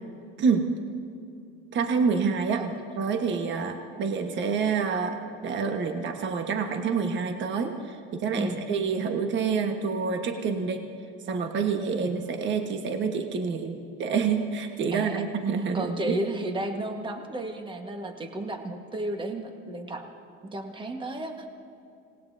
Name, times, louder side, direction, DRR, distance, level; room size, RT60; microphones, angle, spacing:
voice 1, 1.7-2.6 3.0-10.8 11.3-16.2, right 5 dB, 40° right, 4 dB, 1.4 m, -27 dB
voice 2, 14.9-15.3 15.7-20.0 20.4-21.5, right 1 dB, 15° right, 4 dB, 1.5 m, -33 dB
26.0 x 19.0 x 2.7 m, 2.6 s
supercardioid pair, 120°, 30 cm